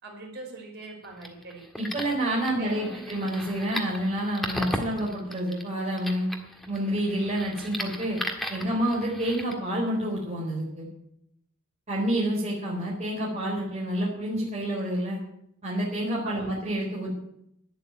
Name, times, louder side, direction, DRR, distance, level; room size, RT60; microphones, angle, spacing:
voice 1, 0.0-1.6 2.4-3.1 16.2-16.5, right 2 dB, 50° right, 0 dB, 5.1 m, -41 dB
sound 1, 1.0-9.5, equal, ahead, 1.6 m, -37 dB
voice 2, 1.8-6.3 6.7-8.2 8.5-10.8 11.9-15.2 15.6-17.1, right 1 dB, 30° right, -4 dB, 4.0 m, -28 dB
11.5 x 9.9 x 9.0 m, 0.75 s
head